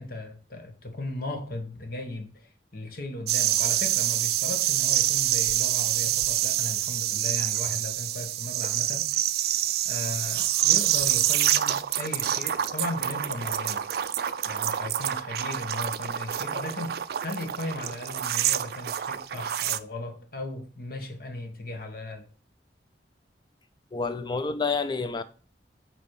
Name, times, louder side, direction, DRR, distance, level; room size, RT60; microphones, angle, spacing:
voice 1, 0.0-9.1 9.8-13.8 14.4-22.3, left 2 dB, 55° left, 1.1 m, -37 dB
sound 1, 3.3-19.8, right 12 dB, 60° right, 0.3 m, -27 dB
voice 2, 23.9-25.2, left 4 dB, 25° left, 0.4 m, -28 dB
7.4 x 3.0 x 4.7 m
head